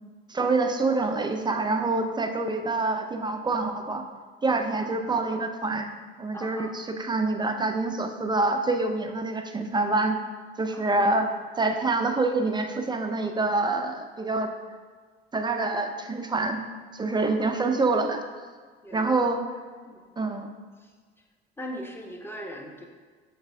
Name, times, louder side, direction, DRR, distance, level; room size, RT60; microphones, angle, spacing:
voice 1, 0.3-4.0 4.4-5.9 6.2-10.2 10.6-14.5 15.3-16.6 16.9-18.2 18.9-19.4 20.2-20.5, right 3 dB, 15° right, 5 dB, 0.6 m, -26 dB
voice 2, 6.3-6.7 10.7-11.1 17.2-17.6 18.8-19.1 19.8-20.0 21.6-22.8, equal, 5° left, 2 dB, 0.9 m, -40 dB
6.7 x 4.0 x 3.5 m, 1.5 s
figure-of-eight pair, 55°, 31 cm